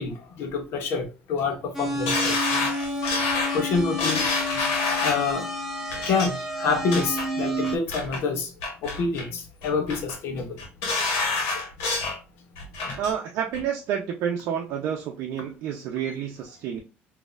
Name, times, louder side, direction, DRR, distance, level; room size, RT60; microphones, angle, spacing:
voice 1, 0.0-2.5 3.5-4.3 5.0-5.5 6.1-8.5 8.8-10.6, left 4 dB, 65° left, 1.0 m, -27 dB
sound 1, 1.7-7.8, equal, 5° right, 0.9 m, -30 dB
sound 2, 2.1-5.3 5.9-6.3 6.7-7.2 7.6-8.2 8.6-9.3 9.6-10.1 10.6-12.2 12.5-13.1 13.5-13.6, left 3 dB, 85° left, 1.4 m, -27 dB
voice 2, 12.9-16.8, right 8 dB, 70° right, 0.6 m, -29 dB
3.9 x 2.7 x 2.4 m
cardioid pair, 115°, 4 cm